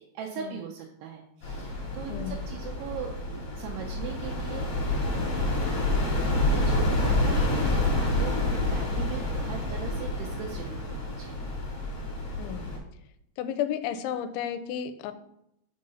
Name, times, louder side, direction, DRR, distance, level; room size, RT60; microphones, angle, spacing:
voice 1, 0.1-5.3 6.4-11.5, right 8 dB, 85° right, 1 dB, 2.3 m, -40 dB
sound 1, 1.4-12.8, left 2 dB, 45° left, 2.7 m, -28 dB
voice 2, 13.4-15.1, left 9 dB, 85° left, 10 dB, 2.9 m, -32 dB
6.4 x 3.8 x 5.5 m, 0.79 s
omnidirectional pair, 5.3 m